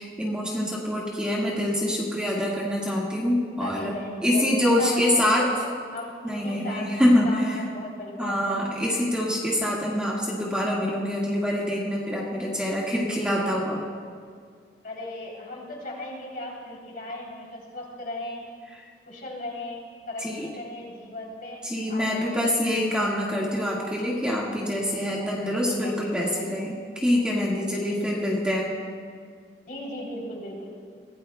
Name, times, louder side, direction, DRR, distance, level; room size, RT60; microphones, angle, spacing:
voice 1, 0.0-3.9 4.2-5.5 6.2-7.6 8.2-13.8 20.2-20.5 21.6-28.7, left 1 dB, 5° right, -5 dB, 1.7 m, -25 dB
voice 2, 3.6-5.5 5.9-6.1 6.4-6.9 7.2-8.6 12.6-13.2 14.8-18.5 19.0-21.6 21.9-22.5 25.0-25.4 25.6-25.9 26.3-26.5 27.8-28.2 29.7-30.7, left 1 dB, 50° left, -2 dB, 3.3 m, -37 dB
23.0 x 17.0 x 2.2 m, 2.1 s
head